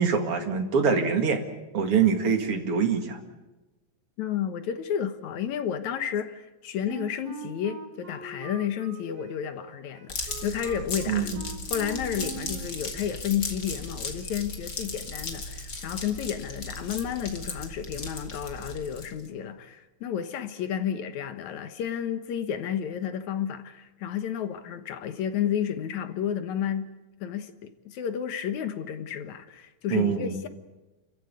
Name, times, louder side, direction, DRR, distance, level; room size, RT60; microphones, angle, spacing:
voice 1, 0.0-1.4 1.7-3.2 11.1-11.3 29.9-30.4, right 6 dB, 50° right, 2.8 m, -24 dB
voice 2, 4.2-11.3 11.7-26.9 27.2-30.5, left 9 dB, 75° left, 2.5 m, -31 dB
Wind instrument woodwind instrument, 6.8-12.7, right 6 dB, 70° right, 3.6 m, -42 dB
sound 1, 10.1-19.3, left 3 dB, 35° left, 2.5 m, -36 dB
29.5 x 15.0 x 9.6 m
omnidirectional pair, 3.4 m